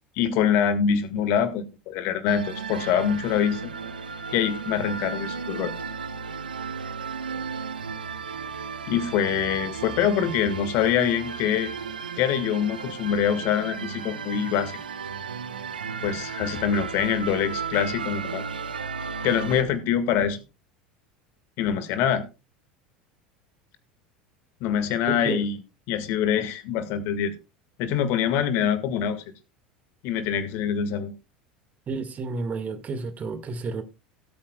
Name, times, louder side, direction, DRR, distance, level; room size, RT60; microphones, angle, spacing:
voice 1, 0.2-3.6 4.3-5.7 8.9-11.7 12.2-14.8 16.0-18.4 19.2-20.4 21.6-22.2 24.6-25.6 25.9-27.3 27.8-29.2 30.0-31.1, left 8 dB, 55° left, 1.7 m, -24 dB
sound 1, 2.3-19.6, right 5 dB, 80° right, 0.8 m, -34 dB
voice 2, 25.1-25.4 31.9-33.8, right 4 dB, 30° right, 1.7 m, -31 dB
17.5 x 8.6 x 2.2 m
figure-of-eight pair, 75°, 5 cm